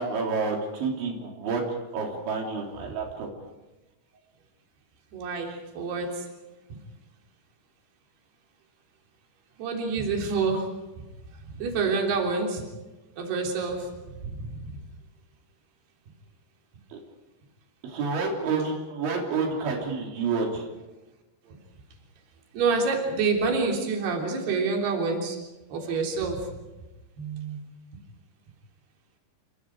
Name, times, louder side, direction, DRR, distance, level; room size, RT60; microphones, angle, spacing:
voice 1, 0.0-1.6 1.9-3.3 16.9-17.0 17.8-20.7, right 4 dB, 90° right, 1 dB, 5.7 m, -29 dB
voice 2, 5.1-6.3 6.7-6.8 9.6-10.7 11.6-12.7 13.2-13.9 14.2-14.7 21.5-21.6 22.5-25.4 25.7-26.5 27.2-27.6, right 4 dB, 65° right, 1 dB, 5.5 m, -27 dB
29.0 x 25.0 x 4.8 m, 1.1 s
omnidirectional pair, 5.2 m